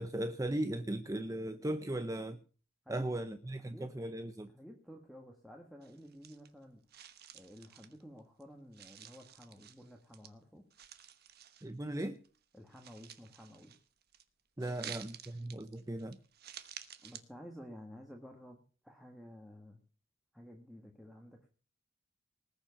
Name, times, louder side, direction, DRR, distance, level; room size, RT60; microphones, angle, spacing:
voice 1, 0.0-2.4 2.9-4.5 11.6-12.2 14.6-16.2, right 1 dB, 15° right, 10 dB, 0.6 m, -37 dB
voice 2, 2.8-6.8 7.3-10.6 12.5-13.7 14.6-14.9 17.0-19.8 20.3-21.5, equal, ahead, 1 dB, 1.6 m, -53 dB
sound 1, 5.8-6.6 6.9-8.4 8.7-10.3 10.7-11.9 12.2-14.2 14.6-17.2, right 10 dB, 50° right, 1.2 m, -51 dB
19.5 x 7.3 x 7.0 m, 0.39 s
head